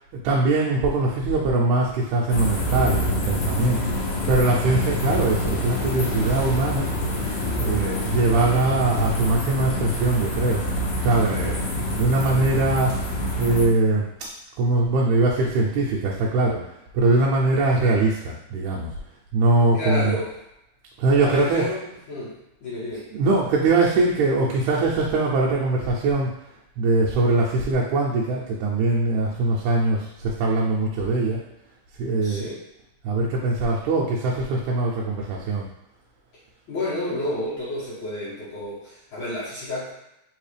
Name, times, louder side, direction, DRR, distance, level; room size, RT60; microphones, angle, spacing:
voice 1, 0.2-3.8 4.3-6.9 7.6-10.7 11.0-11.7 11.9-13.0 13.4-14.1 14.6-16.6 16.9-18.9 19.3-20.2 21.0-21.6 23.1-26.3 26.8-31.4 32.0-32.5 33.0-35.7, right 2 dB, 80° right, -3 dB, 2.0 m, -22 dB
sound 1, 2.3-13.7, left 1 dB, 80° left, 1.4 m, -26 dB
voice 2, 19.7-20.3 21.2-21.8 22.1-22.3 22.6-23.0 32.2-32.6 36.7-39.9, left 1 dB, 60° left, -8 dB, 1.3 m, -30 dB
4.6 x 3.2 x 3.3 m, 0.86 s
omnidirectional pair, 3.6 m